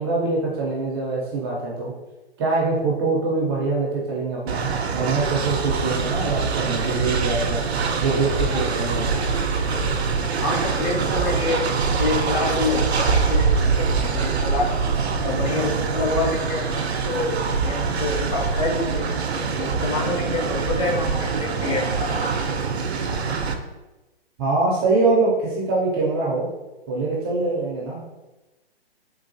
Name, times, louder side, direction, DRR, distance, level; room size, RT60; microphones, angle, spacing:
voice 1, 0.0-1.9 2.4-7.6 8.0-9.2 24.4-26.5 26.9-28.0, right 3 dB, 25° right, -4 dB, 0.5 m, -24 dB
Train, 4.5-23.5, right 5 dB, 85° right, 0.5 m, -24 dB
voice 2, 10.4-14.8 15.2-17.4 17.6-19.1 19.6-22.4, left 3 dB, 30° left, -2 dB, 0.7 m, -27 dB
3.8 x 2.4 x 2.6 m, 1.1 s
figure-of-eight pair, 130°, 31 cm